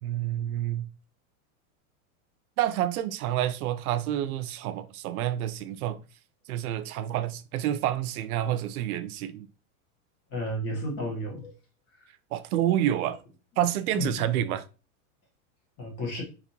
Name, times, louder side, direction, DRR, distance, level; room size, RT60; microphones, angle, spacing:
voice 1, 0.0-0.9 2.6-6.0 6.5-9.5 12.3-13.2 13.6-14.6, right 12 dB, 85° right, 0.6 m, -28 dB
voice 2, 10.3-11.5 11.9-12.1 13.9-14.2 15.8-16.2, left 1 dB, 25° left, 0.9 m, -32 dB
4.2 x 2.5 x 2.7 m
supercardioid pair, 170°, 42 cm